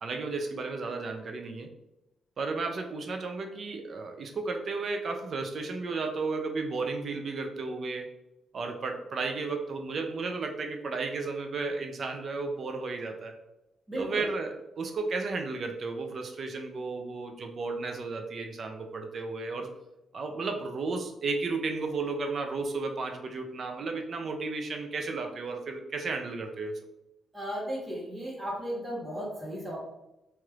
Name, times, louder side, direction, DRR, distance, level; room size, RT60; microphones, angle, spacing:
voice 1, 0.0-1.7 2.4-8.1 8.5-13.3 14.0-19.7 20.1-26.7, right 3 dB, 50° right, 4 dB, 0.4 m, -33 dB
voice 2, 13.9-14.3 27.3-29.8, right 1 dB, 20° right, -4 dB, 1.0 m, -35 dB
3.1 x 2.9 x 2.3 m, 0.93 s
cardioid pair, 110°, 0 cm